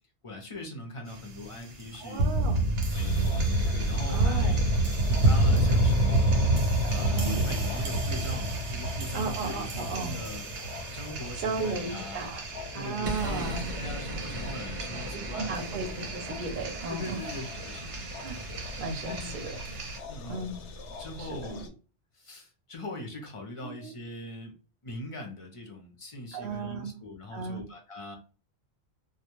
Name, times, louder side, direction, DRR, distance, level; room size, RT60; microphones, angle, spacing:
voice 1, 0.2-2.3 3.0-3.4 3.7-4.6 5.1-6.5 6.9-10.5 10.9-12.3 12.7-15.6 16.9-18.1 19.1-19.3 20.1-20.5 21.0-21.7 22.1-24.5 24.8-28.2, left 1 dB, 40° left, 2 dB, 0.5 m, -41 dB
sound 1, 1.1-20.0, right 1 dB, 90° right, 1.0 m, -29 dB
voice 2, 2.0-2.6 4.1-4.6 6.8-7.4 9.1-10.2 11.4-12.4 12.7-13.7 15.3-17.2 18.2-18.4 18.8-19.6 20.3-20.6 21.2-21.6 23.8-23.9 26.3-26.9 27.3-27.6, right 4 dB, 55° right, 4 dB, 0.7 m, -35 dB
sound 2, 2.9-21.7, left 5 dB, 85° left, 0.9 m, -43 dB
2.2 x 2.2 x 2.9 m, 0.36 s
omnidirectional pair, 1.2 m